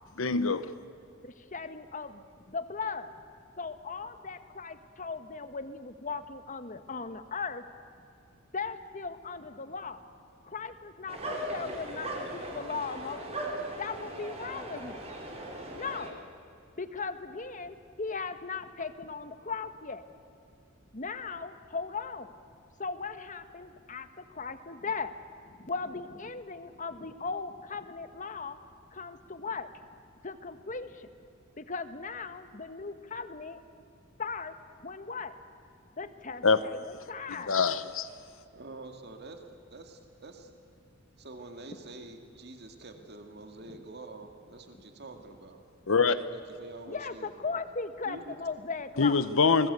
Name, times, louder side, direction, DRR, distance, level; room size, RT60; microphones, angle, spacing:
voice 1, 0.2-0.7 36.4-36.6 37.3-38.1 45.9-46.2 49.0-49.7, left 4 dB, 85° left, 12 dB, 1.0 m, -24 dB
voice 2, 1.2-3.1 3.6-7.6 8.5-10.0 10.4-13.4 13.8-15.0 15.7-16.2 16.8-20.0 20.9-22.3 22.8-25.1 25.5-28.6 28.9-29.7 30.2-31.1 31.6-33.6 34.2-34.5 34.8-35.3 36.0-37.6 46.9-49.3, left 4 dB, 40° left, 10 dB, 1.4 m, -38 dB
sound 1, 11.1-16.1, right 1 dB, 30° right, 4.0 m, -38 dB
voice 3, 38.5-39.4 39.7-40.5 41.2-47.6 48.0-48.4, right 2 dB, 55° right, 5 dB, 2.2 m, -47 dB
27.5 x 21.0 x 8.2 m, 2.6 s
head